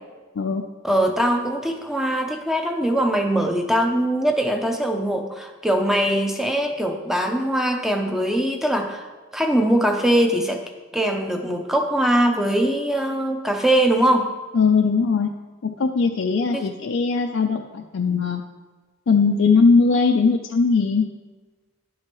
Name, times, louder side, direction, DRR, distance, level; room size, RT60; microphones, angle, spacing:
voice 1, 0.8-9.1 9.3-10.6 10.9-14.3 16.5-16.6, right 1 dB, ahead, 4 dB, 0.6 m, -21 dB
voice 2, 14.5-15.3 15.6-18.4 19.1-21.1, left 4 dB, 65° left, 3 dB, 0.4 m, -19 dB
11.0 x 7.5 x 3.0 m, 1.3 s
head